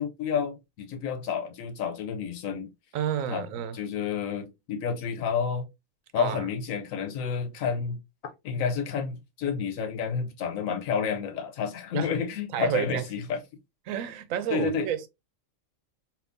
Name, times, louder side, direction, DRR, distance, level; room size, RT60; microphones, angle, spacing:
voice 1, 0.0-2.7 3.3-3.4 3.7-5.7 6.1-8.0 8.4-13.4 14.5-14.9, left 6 dB, 90° left, 1.0 m, -30 dB
voice 2, 2.9-3.8 6.2-6.5 11.9-12.2 12.5-13.1 13.9-15.1, right 9 dB, 85° right, 1.0 m, -30 dB
3.5 x 2.6 x 2.5 m
omnidirectional pair, 1.4 m